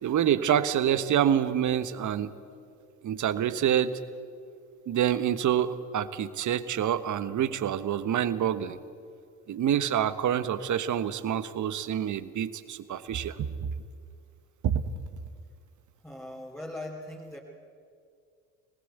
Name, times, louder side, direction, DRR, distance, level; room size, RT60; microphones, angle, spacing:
voice 1, 0.0-2.3 3.0-4.0 4.9-8.8 9.5-13.7 14.6-14.8, right 9 dB, 45° right, 13 dB, 1.4 m, -27 dB
voice 2, 16.0-17.4, left 1 dB, 5° left, -2 dB, 3.3 m, -40 dB
24.5 x 19.5 x 8.1 m, 2.3 s
hypercardioid pair, 55°, 40 cm